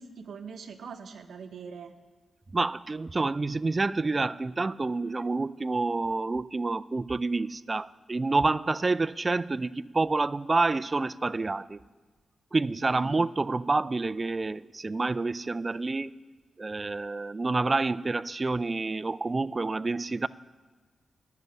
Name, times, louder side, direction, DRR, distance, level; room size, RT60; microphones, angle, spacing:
voice 1, 0.0-1.9 12.9-13.1, right 6 dB, 80° right, 5 dB, 0.8 m, -42 dB
voice 2, 2.5-11.8 12.5-16.1 16.6-20.3, right 3 dB, 30° right, 15 dB, 0.3 m, -28 dB
11.0 x 6.7 x 9.3 m, 1.4 s
cardioid pair, 90°, 0 cm